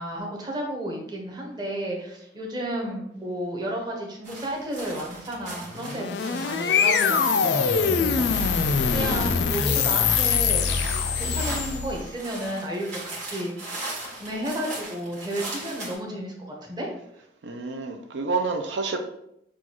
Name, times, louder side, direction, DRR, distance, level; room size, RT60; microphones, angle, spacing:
voice 1, 0.0-16.9, right 1 dB, 25° right, -1 dB, 0.9 m, -32 dB
sound 1, 4.2-16.0, right 2 dB, 45° right, 1.4 m, -38 dB
sound 2, 5.7-12.1, left 6 dB, 65° left, 0.4 m, -23 dB
voice 2, 17.4-19.0, right 4 dB, 80° right, 5 dB, 0.4 m, -28 dB
6.1 x 2.3 x 2.9 m, 0.78 s
head